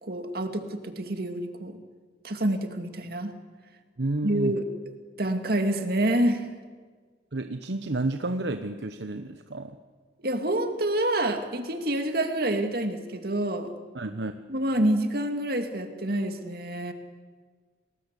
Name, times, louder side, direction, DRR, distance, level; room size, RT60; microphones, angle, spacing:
voice 1, 0.0-1.8 2.2-3.3 4.2-4.6 5.2-6.4 10.2-13.7 14.5-16.9, right 1 dB, 55° right, 6 dB, 2.4 m, -27 dB
voice 2, 4.0-4.6 7.3-9.8 13.9-14.3, right 2 dB, 70° right, 8 dB, 1.0 m, -31 dB
29.5 x 20.0 x 8.3 m, 1.5 s
head